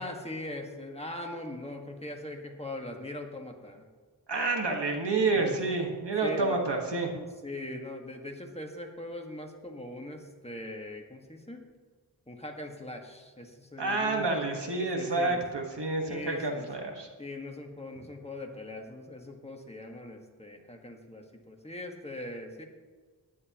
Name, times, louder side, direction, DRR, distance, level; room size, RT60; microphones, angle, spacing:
voice 1, 0.0-3.9 5.3-5.6 6.2-6.7 7.1-11.7 12.3-14.3 14.7-15.4 16.0-16.7 17.2-22.6, left 1 dB, 15° left, 2 dB, 1.7 m, -41 dB
voice 2, 4.3-7.2 13.8-17.1, right 3 dB, 85° right, 1 dB, 1.7 m, -29 dB
17.5 x 11.0 x 3.0 m, 1.5 s
wide cardioid pair, 60°, 41 cm